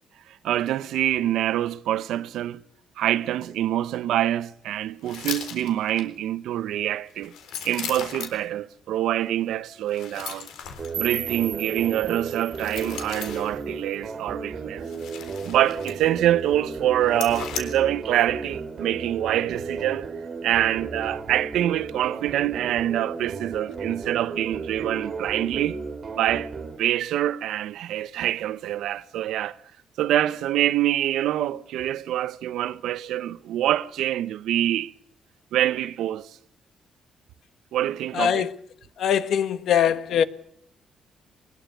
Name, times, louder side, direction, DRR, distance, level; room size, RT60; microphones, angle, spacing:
voice 1, 0.4-2.6 3.0-7.3 7.6-10.5 11.0-14.9 15.4-20.1 20.4-25.8 26.2-26.5 26.8-29.6 30.0-34.9 35.5-36.3 37.7-38.5, right 12 dB, 85° right, 0.9 m, -25 dB
sound 1, 5.0-6.0 7.1-8.5 9.9-11.0 12.5-13.6 14.8-16.2 16.5-16.6 17.1-17.6, left 8 dB, 90° left, 3.7 m, -36 dB
sound 2, 10.8-26.8, right 4 dB, 35° right, 2.3 m, -34 dB
sound 3, 10.9-13.9, right 8 dB, 55° right, 1.6 m, -36 dB
voice 2, 38.1-38.5 39.0-40.2, left 8 dB, 60° left, 1.3 m, -22 dB
22.0 x 20.5 x 6.8 m
cardioid pair, 145°, 0 cm